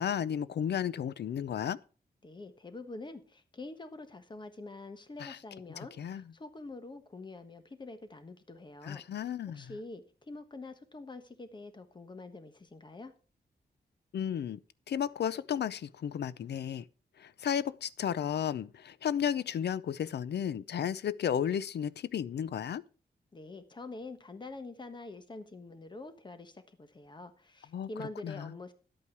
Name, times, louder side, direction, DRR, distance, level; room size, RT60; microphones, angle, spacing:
voice 1, 0.0-1.8 5.2-5.4 6.0-6.2 8.8-9.8 14.1-14.6 14.9-16.9 17.2-22.8 27.7-28.5, left 9 dB, 90° left, 0.6 m, -33 dB
voice 2, 2.2-9.3 9.5-13.1 23.3-28.7, left 2 dB, 25° left, 1.3 m, -46 dB
11.0 x 8.6 x 4.7 m
wide cardioid pair, 150°, 17 cm